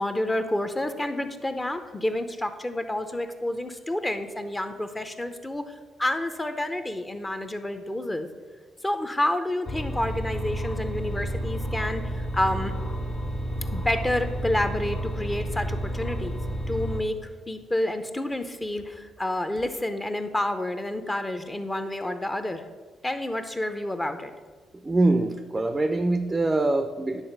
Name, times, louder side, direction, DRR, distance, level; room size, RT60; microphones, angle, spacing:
voice 1, 0.0-8.3 8.8-12.7 13.7-16.4 16.7-17.2 17.5-22.6 23.0-24.3, left 1 dB, 15° left, 8 dB, 0.7 m, -29 dB
sound 1, 9.6-17.0, right 1 dB, 55° left, 1.7 m, -31 dB
voice 2, 24.8-27.2, right 2 dB, 20° right, 7 dB, 0.5 m, -24 dB
9.8 x 4.0 x 6.6 m, 1.4 s
cardioid pair, 90°, 0 cm